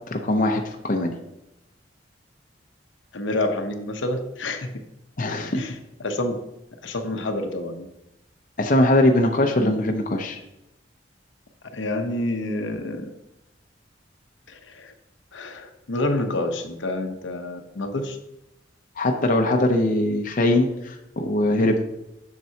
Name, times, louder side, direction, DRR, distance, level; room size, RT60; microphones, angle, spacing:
voice 1, 0.1-1.1 5.2-5.7 8.6-10.4 19.0-21.8, left 1 dB, 45° left, 3 dB, 0.7 m, -21 dB
voice 2, 3.1-4.7 5.6-5.7 6.0-6.4 6.8-7.9 9.6-9.7 11.7-13.1 14.5-14.9 15.3-18.2, left 1 dB, 85° left, 5 dB, 0.9 m, -28 dB
7.5 x 6.7 x 2.8 m, 0.89 s
head